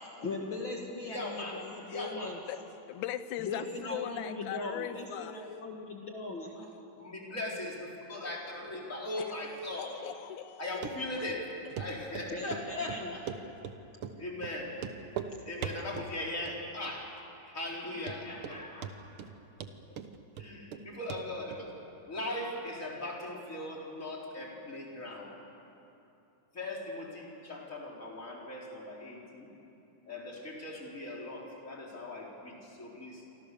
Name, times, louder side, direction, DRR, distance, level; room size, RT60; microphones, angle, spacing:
voice 1, 0.2-2.4 3.4-6.7 12.3-13.2, left 2 dB, 40° left, 0 dB, 2.2 m, -39 dB
voice 2, 1.1-1.6 1.9-2.3 7.0-10.0 10.6-11.5 11.8-13.2 14.2-14.7 15.4-17.1 17.4-19.1 20.4-21.7 22.1-25.3 26.5-29.5 30.1-33.2, left 1 dB, 20° left, -2 dB, 4.3 m, -39 dB
voice 3, 2.9-5.4 9.2-9.5 9.8-10.7, left 11 dB, 70° left, 11 dB, 2.2 m, -39 dB
Run, 10.8-10.9 11.3-11.4 11.8-11.9 12.1-12.6 12.9-13.8 14.0-14.2 14.4-14.5 14.8-15.3 15.6-16.1 16.5-16.9 17.2-17.3 17.7-17.8 18.1-18.6 18.8-19.3 19.6-20.8 21.1-21.2 21.5-21.6, right 8 dB, 70° right, 1.3 m, -39 dB
28.5 x 25.5 x 6.9 m, 2.8 s
omnidirectional pair, 3.8 m